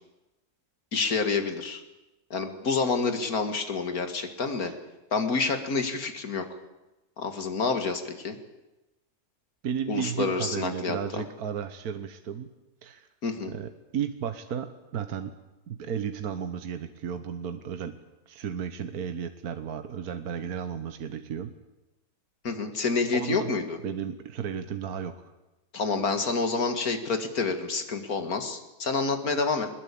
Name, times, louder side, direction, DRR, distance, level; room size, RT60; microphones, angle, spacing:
voice 1, 0.9-1.8 2.3-4.7 5.1-6.5 7.2-8.4 9.9-11.2 13.2-13.5 22.4-23.8 25.7-29.7, left 4 dB, 65° left, 7 dB, 2.6 m, -28 dB
voice 2, 9.6-12.5 12.8-13.1 13.5-15.3 15.7-18.0 18.3-21.5 22.7-23.5 23.8-25.3, right 8 dB, 70° right, 9 dB, 1.6 m, -34 dB
21.5 x 20.5 x 8.6 m, 1.0 s
omnidirectional pair, 1.7 m